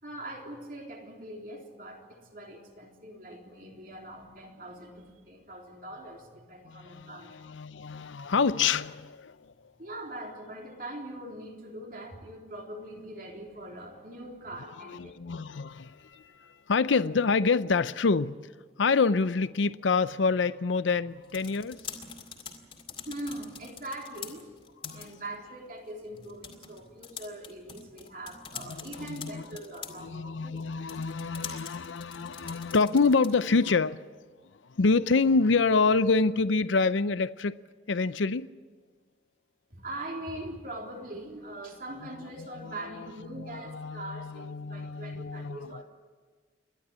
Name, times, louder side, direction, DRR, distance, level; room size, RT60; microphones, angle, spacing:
voice 1, 0.0-7.3 9.8-15.2 23.0-24.5 24.9-30.6 39.7-45.8, right 1 dB, 50° right, 3.5 m, -42 dB
voice 2, 6.7-9.3 15.0-18.4 18.8-21.8 24.8-25.1 29.0-29.4 30.0-34.0 34.8-37.5 37.9-38.5 42.6-42.7 43.3-45.8, left 4 dB, 90° left, 0.6 m, -27 dB
sound 1, 21.1-33.6, left 6 dB, 30° left, 2.2 m, -45 dB
29.0 x 11.5 x 9.6 m
head